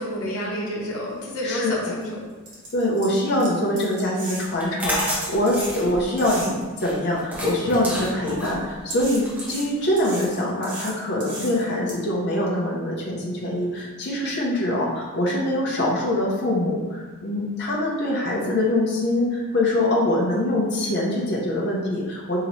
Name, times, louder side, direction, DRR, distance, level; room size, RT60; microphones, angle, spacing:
voice 1, 0.0-2.2, equal, 75° left, -3 dB, 0.9 m, -29 dB
voice 2, 1.4-1.9 2.7-22.4, left 1 dB, 50° left, -4 dB, 0.6 m, -24 dB
sound 1, 1.4-1.5 2.0-2.1 2.5-6.8 7.4-8.3 8.9-11.9, right 1 dB, 55° right, 1.1 m, -36 dB
sound 2, 4.5-10.2, equal, 10° right, 0.9 m, -31 dB
3.1 x 2.8 x 4.0 m, 1.3 s
head